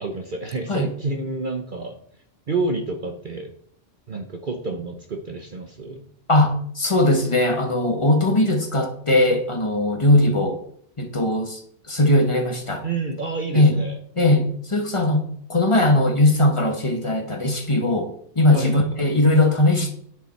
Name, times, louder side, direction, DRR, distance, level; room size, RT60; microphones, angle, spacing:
voice 1, 0.0-2.0 2.5-3.5 4.1-6.1 12.8-14.0 18.5-18.9, right 3 dB, 45° right, 4 dB, 1.0 m, -29 dB
voice 2, 6.3-10.6 11.0-11.6 11.9-12.8 13.5-13.8 14.2-18.1 18.3-19.9, left 1 dB, 25° left, 4 dB, 1.4 m, -19 dB
9.9 x 6.7 x 4.5 m, 0.65 s
omnidirectional pair, 1.3 m